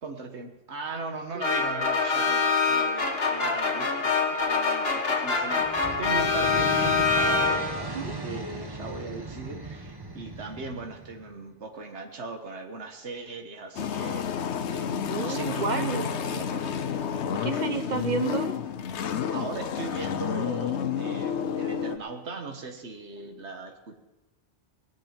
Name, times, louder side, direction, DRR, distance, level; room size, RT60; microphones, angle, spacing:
voice 1, 0.0-16.7 19.3-24.0, right 3 dB, 75° right, 5 dB, 1.7 m, -38 dB
sound 1, 1.4-7.9, left 4 dB, 60° left, 1.8 m, -25 dB
sound 2, 5.3-11.4, right 3 dB, 20° right, 1.1 m, -37 dB
sound 3, 13.8-22.0, left 8 dB, 80° left, 1.0 m, -30 dB
voice 2, 15.1-16.1 17.3-18.5, right 5 dB, 45° right, 9 dB, 1.0 m, -31 dB
19.0 x 6.4 x 8.9 m, 1.1 s
omnidirectional pair, 1.2 m